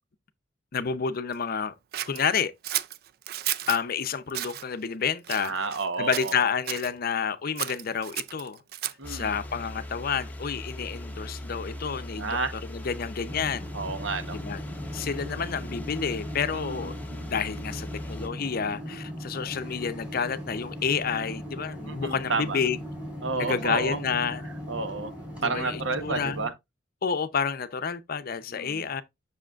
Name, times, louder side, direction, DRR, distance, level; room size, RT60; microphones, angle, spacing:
voice 1, 0.7-1.7 2.1-2.5 3.7-5.5 6.0-8.6 9.1-12.3 12.7-13.7 14.3-14.6 14.9-22.8 23.4-24.4 25.4-26.4 27.0-29.0, left 6 dB, 50° left, 0.6 m, -29 dB
Scissors, 1.9-3.8 4.3-4.6 5.2-5.9 6.1-6.9 7.6-9.1, right 13 dB, 55° right, 0.4 m, -33 dB
voice 2, 5.4-6.5 9.0-9.3 12.1-12.5 13.7-14.4 16.5-17.0 21.8-22.6 23.2-24.0 24.4-25.1 25.4-26.5 28.5-28.9, right 3 dB, 80° right, 1.0 m, -31 dB
sound 1, 9.0-18.3, left 1 dB, 10° left, 0.8 m, -39 dB
sound 2, 13.3-26.5, equal, 10° right, 4.1 m, -39 dB
7.5 x 6.3 x 2.4 m
head